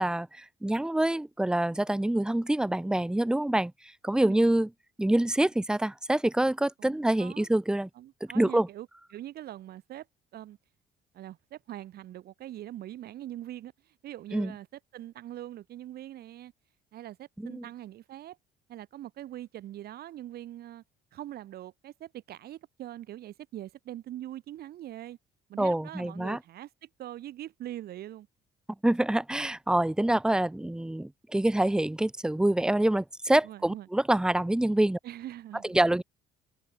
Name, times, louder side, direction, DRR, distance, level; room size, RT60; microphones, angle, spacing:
voice 1, 0.0-3.7 4.0-4.7 5.0-7.9 8.3-8.7 14.3-14.5 17.4-17.6 25.6-26.4 28.8-35.0 35.7-36.0, right 1 dB, 5° right, 0.6 m, -26 dB
voice 2, 6.8-7.5 8.0-8.9 9.1-10.1 10.3-10.6 11.1-16.5 16.9-18.4 18.7-20.8 21.1-25.2 25.5-28.3 33.4-33.9 35.0-35.8, right 13 dB, 65° right, 7.3 m, -43 dB
cardioid pair, 110°, 17 cm